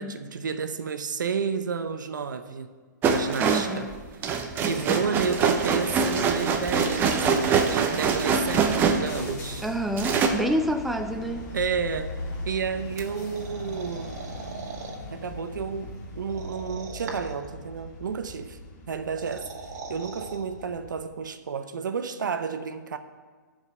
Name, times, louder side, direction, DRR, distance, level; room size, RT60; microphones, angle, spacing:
voice 1, 0.0-2.7 3.1-3.9 4.6-9.6 11.5-12.1 12.5-14.2 15.1-18.6 18.9-19.5 19.9-23.0, right 6 dB, 80° right, 10 dB, 0.8 m, -31 dB
sound 1, 3.0-9.6 10.0-10.3, right 5 dB, 20° right, 0.8 m, -24 dB
voice 2, 3.4-4.0 9.6-11.5, right 1 dB, ahead, 6 dB, 0.4 m, -28 dB
sound 2, 5.0-21.1, left 2 dB, 45° left, 2.0 m, -40 dB
sound 3, 13.0-15.0 16.3-17.5 18.9-20.4, right 4 dB, 55° right, 1.8 m, -40 dB
13.0 x 5.2 x 5.5 m, 1.5 s
hypercardioid pair, 140°, 10 cm